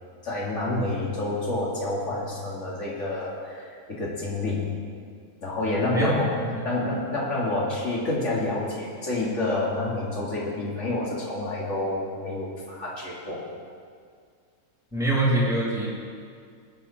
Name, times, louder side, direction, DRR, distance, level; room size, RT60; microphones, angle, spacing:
voice 1, 0.2-4.7 5.4-6.4 6.6-13.4, left 2 dB, 50° left, -5 dB, 2.8 m, -28 dB
voice 2, 5.9-6.7 14.9-15.9, right 1 dB, ahead, -8 dB, 3.4 m, -24 dB
20.0 x 8.4 x 4.3 m, 2.1 s
omnidirectional pair, 1.6 m